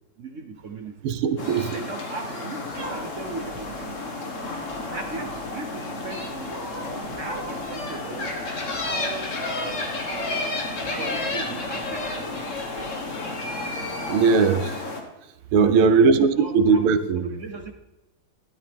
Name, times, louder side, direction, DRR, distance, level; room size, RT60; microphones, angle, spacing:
voice 1, 0.2-0.9 1.4-4.0 5.0-6.6 7.2-8.4 8.8-10.4 10.9-12.3 15.6-16.9 17.2-17.7, right 4 dB, 55° right, 6 dB, 0.8 m, -37 dB
voice 2, 1.0-1.7 14.1-15.0 15.5-17.2, right 5 dB, 80° right, 11 dB, 1.7 m, -19 dB
sound 1, 1.4-15.0, left 2 dB, 40° left, 1.8 m, -31 dB
Meow, 2.7-14.3, right 1 dB, 15° right, 1.0 m, -43 dB
12.5 x 12.5 x 3.5 m, 1.0 s
omnidirectional pair, 2.3 m